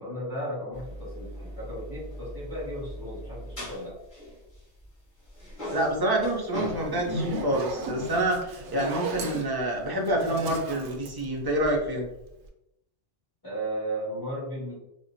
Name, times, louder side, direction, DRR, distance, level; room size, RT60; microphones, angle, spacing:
voice 1, 0.0-4.0 8.6-8.7 13.4-14.8, right 1 dB, 15° left, -9 dB, 1.4 m, -35 dB
sound 1, 0.7-5.0 5.2-7.3, equal, 40° left, 1.7 m, -39 dB
voice 2, 5.7-12.1, right 1 dB, 30° right, -1 dB, 0.5 m, -27 dB
Zipper (clothing), 6.8-12.0, right 2 dB, 70° right, 0.8 m, -35 dB
4.2 x 2.2 x 2.6 m, 0.86 s
omnidirectional pair, 1.3 m